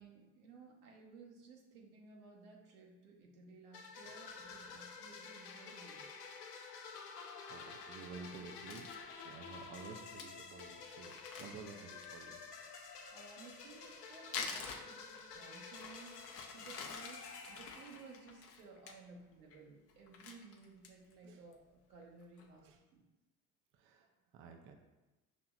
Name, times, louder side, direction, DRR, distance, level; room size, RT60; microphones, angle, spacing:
voice 1, 0.0-6.1 13.1-16.1 16.5-23.0, right 4 dB, 75° right, -1 dB, 1.0 m, -57 dB
sound 1, 3.7-18.5, left 5 dB, 90° left, 0.6 m, -51 dB
voice 2, 7.5-8.9 9.2-12.4 14.9-15.1 21.2-21.4 22.6-22.8 23.7-24.8, right 5 dB, 30° right, 4 dB, 0.4 m, -52 dB
Crumpling crinkling, 8.3-9.0 9.6-9.7 9.9-10.0 10.2-10.3 10.6-10.7 11.0-12.3 13.4-15.4 15.7-18.9 19.3-19.6 19.9-21.1 21.5-21.6 22.0-22.5, left 5 dB, 30° left, 0.6 m, -47 dB
5.9 x 2.8 x 2.3 m, 1.1 s
hypercardioid pair, 75°, 46 cm